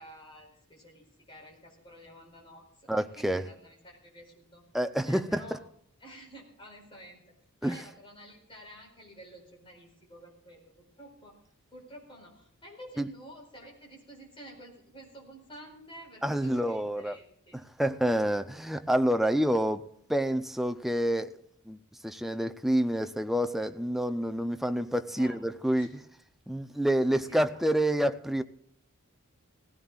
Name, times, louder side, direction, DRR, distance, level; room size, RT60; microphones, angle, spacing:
voice 1, 0.0-4.6 5.0-5.6 6.0-7.2 7.6-10.6 11.0-11.4 11.7-17.6 25.1-25.4 25.7-25.9 27.3-27.6, equal, 25° left, 4.5 m, -50 dB
voice 2, 2.9-3.4 4.7-5.4 7.6-7.8 13.0-13.1 16.2-17.2 17.8-19.8 20.1-21.3 21.7-25.9 26.5-28.4, right 1 dB, ahead, 0.5 m, -28 dB
18.0 x 16.0 x 2.4 m
head